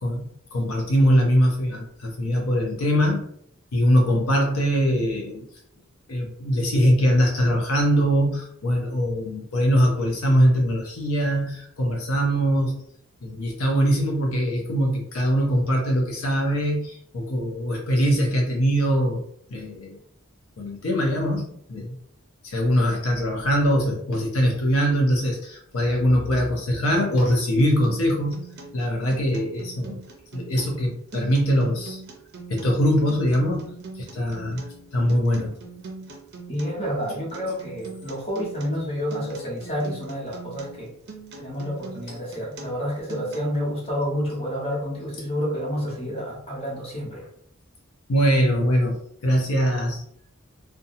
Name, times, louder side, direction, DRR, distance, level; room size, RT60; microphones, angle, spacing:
voice 1, 0.0-3.3 3.7-5.5 6.1-12.8 13.2-19.2 19.5-20.0 20.6-22.0 22.4-28.4 28.7-30.0 30.3-32.0 32.5-35.5 48.1-50.0, equal, 85° left, 0 dB, 0.6 m, -22 dB
Acoustic guitar, 27.6-43.6, right 3 dB, 50° right, 0.5 m, -42 dB
voice 2, 36.5-40.9 41.4-47.2, equal, 25° left, -7 dB, 1.2 m, -29 dB
2.7 x 2.2 x 2.7 m, 0.67 s
head